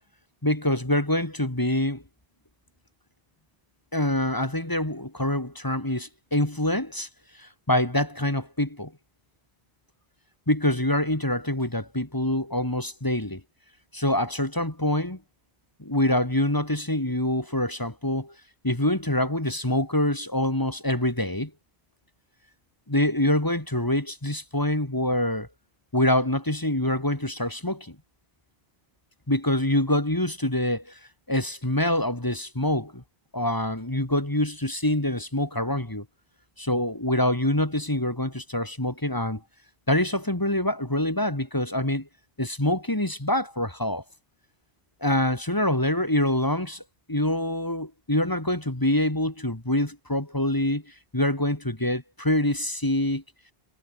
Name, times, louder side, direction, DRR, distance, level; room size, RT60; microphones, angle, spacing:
voice 1, 0.4-2.0 3.9-7.1 7.4-8.9 10.5-13.4 13.9-15.2 15.8-18.3 18.6-21.5 22.9-25.5 25.9-28.0 29.3-31.0 31.3-33.0 33.3-36.0 36.6-39.4 39.9-42.1 42.4-44.0 45.0-46.8 47.1-53.2, left 1 dB, 20° left, 2.3 m, -25 dB
omnidirectional pair, 1.1 m